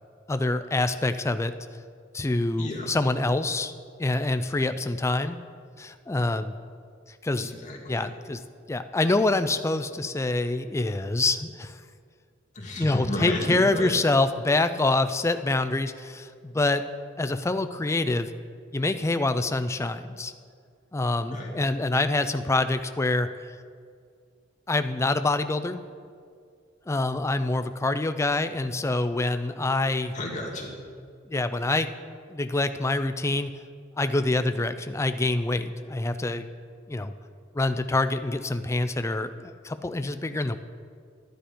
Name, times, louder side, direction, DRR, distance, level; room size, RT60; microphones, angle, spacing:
voice 1, 0.3-1.5 2.1-3.7 4.0-5.4 5.8-6.5 7.2-7.5 7.9-8.4 8.7-11.8 12.8-16.8 17.2-18.3 18.7-20.3 20.9-23.3 24.7-25.8 26.9-30.1 31.3-31.9 32.3-33.5 34.0-36.5 36.9-37.1 37.5-40.6, left 2 dB, 15° left, 10 dB, 0.4 m, -26 dB
voice 2, 2.6-3.0 7.4-8.1 12.5-13.9 21.3-21.6 30.1-30.7, left 1 dB, 40° left, -1 dB, 2.0 m, -33 dB
11.0 x 10.5 x 5.0 m, 2.1 s
head